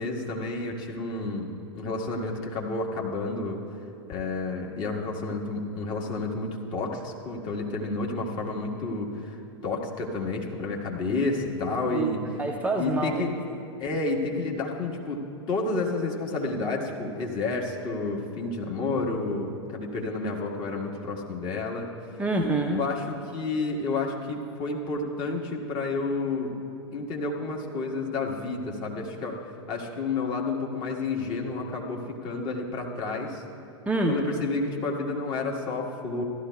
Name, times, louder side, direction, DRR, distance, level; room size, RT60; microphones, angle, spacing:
voice 1, 0.0-3.6 4.1-9.4 9.6-12.2 12.8-13.3 13.8-21.9 22.7-26.5 26.9-29.4 29.7-33.4 34.0-36.2, left 3 dB, 35° left, -1 dB, 1.5 m, -30 dB
voice 2, 11.9-13.2 22.2-22.8 33.9-34.2, right 2 dB, 10° right, 0 dB, 0.6 m, -27 dB
15.5 x 12.5 x 2.3 m, 2.6 s
figure-of-eight pair, 95°, 15 cm